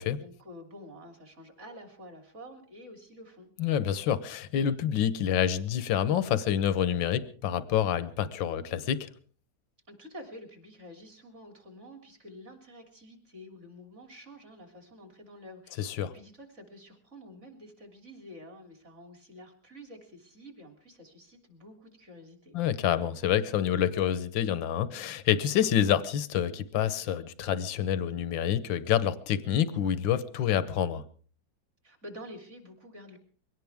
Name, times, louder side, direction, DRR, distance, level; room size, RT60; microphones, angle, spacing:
voice 1, 0.0-3.5 9.9-22.5 31.8-33.2, equal, 40° right, 4 dB, 3.4 m, -49 dB
voice 2, 3.6-9.1 15.8-16.1 22.5-31.0, left 10 dB, 85° left, 14 dB, 1.7 m, -27 dB
23.0 x 17.5 x 3.5 m, 0.43 s
omnidirectional pair, 2.0 m